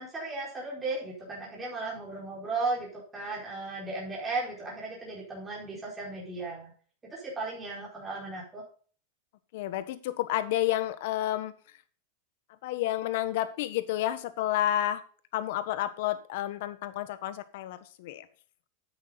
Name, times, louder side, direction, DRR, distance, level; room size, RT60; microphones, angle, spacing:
voice 1, 0.0-6.7 7.0-8.6, right 3 dB, 15° right, -5 dB, 4.8 m, -35 dB
voice 2, 9.5-11.5 12.6-15.0 15.3-18.2, left 13 dB, 65° left, 12 dB, 1.3 m, -30 dB
10.0 x 8.7 x 4.1 m, 0.42 s
supercardioid pair, 135°, 0 cm